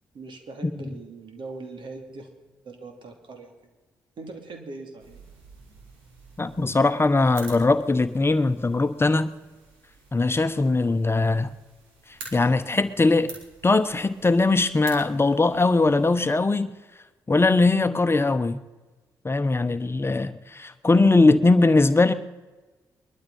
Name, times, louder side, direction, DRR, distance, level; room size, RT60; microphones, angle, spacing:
voice 1, 0.1-2.3 2.6-3.6 4.2-5.3, right 3 dB, 65° right, 5 dB, 2.8 m, -40 dB
sound 1, 5.0-16.4, right 3 dB, 85° right, 3.5 m, -48 dB
voice 2, 6.4-9.3 10.1-11.5 12.3-13.3 13.6-16.7 17.3-18.6 19.2-22.1, left 3 dB, 25° left, 11 dB, 1.0 m, -20 dB
20.5 x 12.0 x 5.5 m, 1.2 s
hypercardioid pair, 45°, 9 cm